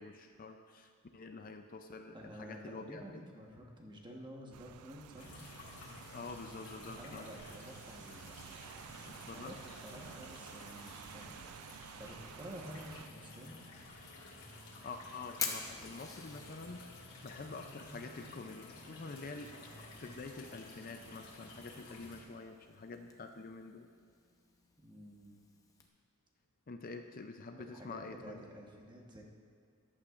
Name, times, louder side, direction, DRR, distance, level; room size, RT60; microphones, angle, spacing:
voice 1, 0.0-3.2 6.1-7.3 9.1-9.6 14.8-17.0 17.2-23.9 26.7-28.4, left 3 dB, 40° left, 6 dB, 0.5 m, -47 dB
voice 2, 2.1-5.4 6.9-13.6 24.8-25.3 27.6-29.2, equal, 20° right, 0 dB, 1.2 m, -51 dB
Rain, 4.5-13.1, right 9 dB, 80° right, 0.3 m, -53 dB
sound 1, 5.2-22.2, left 2 dB, 80° left, 2.3 m, -53 dB
Fire, 14.3-25.9, left 4 dB, 15° left, 0.8 m, -49 dB
14.0 x 11.0 x 2.5 m, 2.3 s
head